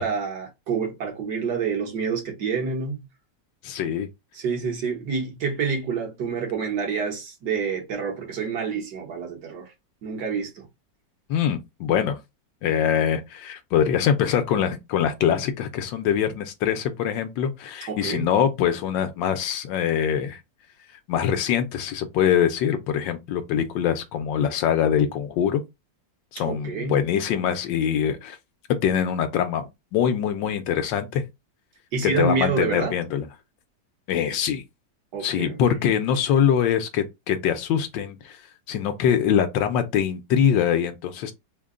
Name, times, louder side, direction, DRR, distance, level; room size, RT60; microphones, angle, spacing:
voice 1, 0.0-3.0 4.3-9.7 10.0-10.7 17.9-18.3 26.4-26.9 31.9-32.9 35.1-35.8, right 5 dB, 65° right, 1.6 m, -28 dB
voice 2, 3.6-4.1 11.3-12.2 12.6-20.4 21.1-25.6 26.3-28.4 28.8-31.2 32.0-33.3 34.1-34.6 35.2-38.2 38.7-41.3, left 8 dB, 80° left, 1.4 m, -23 dB
3.8 x 2.2 x 3.6 m
omnidirectional pair, 2.0 m